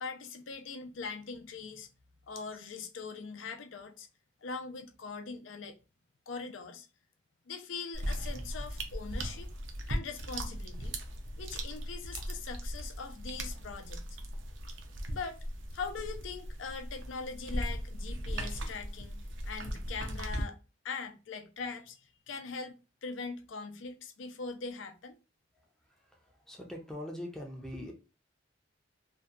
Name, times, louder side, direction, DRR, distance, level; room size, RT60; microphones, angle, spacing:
voice 1, 0.0-1.9 2.3-4.1 4.4-5.7 6.3-6.9 7.5-9.5 9.9-11.0 11.4-14.0 15.1-15.4 15.7-19.2 19.5-20.6 20.8-25.2, left 4 dB, 80° left, 0.4 m, -41 dB
sound 1, 7.9-20.4, right 1 dB, 75° right, 0.5 m, -38 dB
voice 2, 25.6-27.9, left 1 dB, 5° left, 0.4 m, -43 dB
2.6 x 2.2 x 2.3 m
head